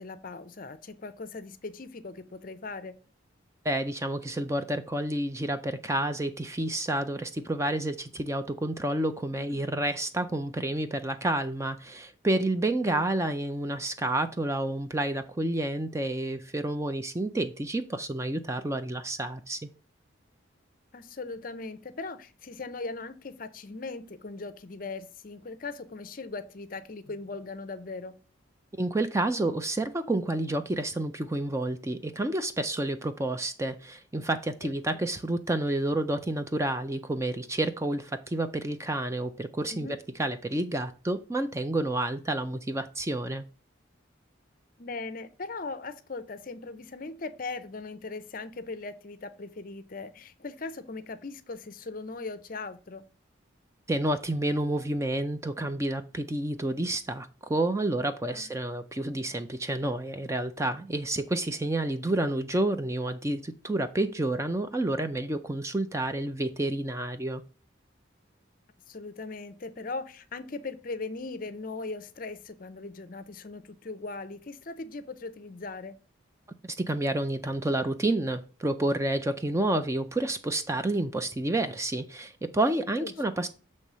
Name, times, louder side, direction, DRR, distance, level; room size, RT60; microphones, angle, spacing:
voice 1, 0.0-3.0 9.3-9.7 12.8-13.0 20.9-28.2 34.9-35.0 39.7-40.0 44.8-53.0 58.3-58.5 68.9-76.0 83.0-83.5, left 3 dB, 45° left, 0.6 m, -39 dB
voice 2, 3.6-19.6 28.8-39.9 40.2-43.4 53.9-67.4 76.6-83.5, right 1 dB, 15° right, 0.4 m, -29 dB
6.9 x 3.2 x 6.1 m
head